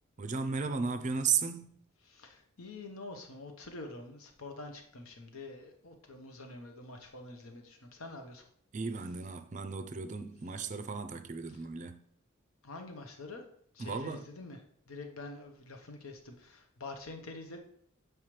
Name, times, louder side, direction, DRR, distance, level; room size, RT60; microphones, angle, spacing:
voice 1, 0.2-1.8 8.7-12.0 13.8-14.3, right 5 dB, 35° right, 0.4 m, -35 dB
voice 2, 2.0-8.5 12.6-13.4 13.7-14.6 14.9-17.6, left 2 dB, 85° left, 1.0 m, -46 dB
7.4 x 4.8 x 3.2 m
head